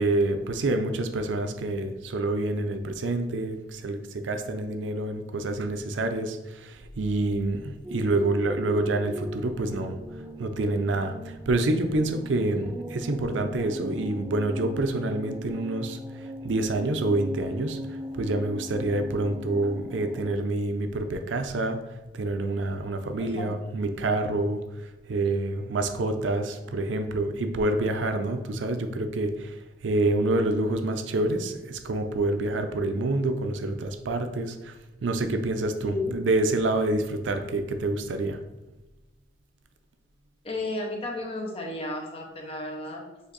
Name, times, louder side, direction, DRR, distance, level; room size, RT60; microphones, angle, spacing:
voice 1, 0.0-10.0 10.4-17.8 18.1-21.8 22.1-24.6 25.1-29.6 29.8-34.7 35.0-38.4, right 2 dB, 80° right, 7 dB, 0.5 m, -27 dB
sound 1, 7.8-20.4, equal, 10° right, 0.4 m, -39 dB
voice 2, 23.2-23.6 35.8-36.2 37.2-37.3 40.4-43.1, left 2 dB, 30° left, 1 dB, 0.7 m, -33 dB
5.1 x 2.5 x 4.0 m, 1.0 s
head